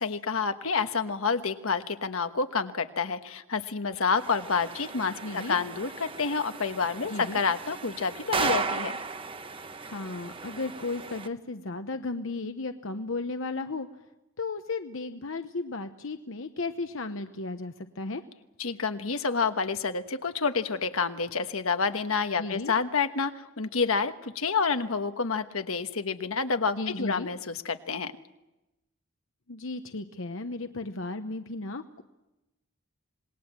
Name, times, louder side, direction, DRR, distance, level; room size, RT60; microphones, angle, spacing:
voice 1, 0.0-9.0 18.6-28.1, left 5 dB, 85° left, 8 dB, 1.3 m, -29 dB
sound 1, 4.2-11.3, right 4 dB, 25° right, 0.9 m, -35 dB
voice 2, 5.2-5.6 7.0-7.4 9.8-13.9 14.4-18.2 22.4-22.7 26.8-27.3 29.5-32.0, left 3 dB, 70° left, 8 dB, 1.0 m, -35 dB
27.0 x 20.5 x 7.4 m, 0.98 s
head